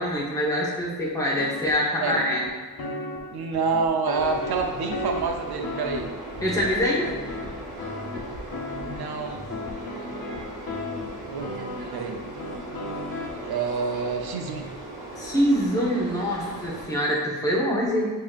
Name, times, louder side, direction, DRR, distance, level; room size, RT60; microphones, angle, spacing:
voice 1, 0.0-2.4 6.4-7.1 15.2-18.1, equal, 10° left, -6 dB, 1.1 m, -24 dB
sound 1, 1.4-13.4, left 2 dB, 65° left, 0.8 m, -35 dB
voice 2, 3.3-6.1 8.9-9.5 11.3-11.6 11.9-12.2 13.4-14.8, right 5 dB, 85° right, 3 dB, 0.6 m, -28 dB
sound 2, 4.1-16.9, right 2 dB, 60° right, 1.0 m, -39 dB
7.2 x 2.9 x 2.5 m, 1.4 s
wide cardioid pair, 120°, 37 cm